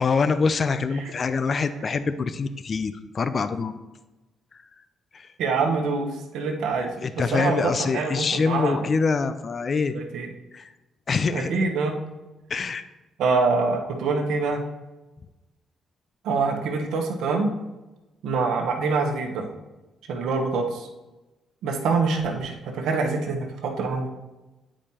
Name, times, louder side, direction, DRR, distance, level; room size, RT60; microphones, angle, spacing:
voice 1, 0.0-3.7 5.1-5.3 7.0-9.9 10.5-10.7 11.1-11.5 12.5-12.8, left 4 dB, 40° left, 11 dB, 0.4 m, -25 dB
voice 2, 5.4-6.1 6.3-6.9 7.3-8.8 9.9-10.3 11.3-12.0 13.2-14.6 16.2-17.5 18.2-19.5 20.1-20.9 21.6-24.1, right 4 dB, 85° right, 2 dB, 1.0 m, -25 dB
8.9 x 4.9 x 2.8 m, 1.1 s
cardioid pair, 90°, 0 cm